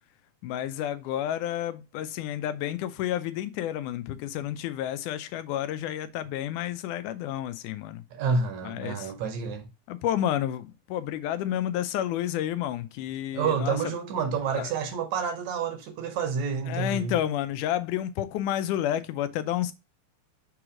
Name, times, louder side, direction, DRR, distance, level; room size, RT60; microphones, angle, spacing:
voice 1, 0.4-8.0 8.6-9.1 9.9-13.8 14.5-14.7 16.7-19.7, left 11 dB, 85° left, 2.1 m, -30 dB
voice 2, 8.1-9.7 13.3-17.2, right 5 dB, 70° right, 1.9 m, -29 dB
7.1 x 3.1 x 4.8 m
omnidirectional pair, 3.5 m